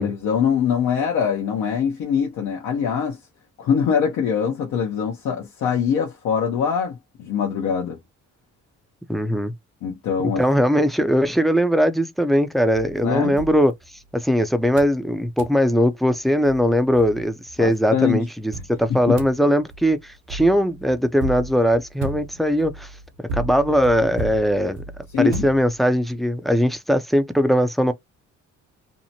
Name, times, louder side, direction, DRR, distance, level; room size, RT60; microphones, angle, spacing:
voice 1, 0.0-3.2 3.6-8.0 9.8-10.4 13.0-13.4 17.6-18.2 18.9-19.2 25.1-25.4, left 7 dB, 70° left, 0.7 m, -23 dB
voice 2, 9.1-9.5 10.4-13.7 14.1-22.9 23.2-24.8 25.2-27.9, equal, ahead, 0.4 m, -20 dB
sound 1, 12.7-14.3 14.8-15.0 15.4-15.6 16.1-16.2 16.4-17.5 18.5-26.1, right 3 dB, 80° right, 0.9 m, -35 dB
2.7 x 2.1 x 2.7 m
cardioid pair, 90°, 30 cm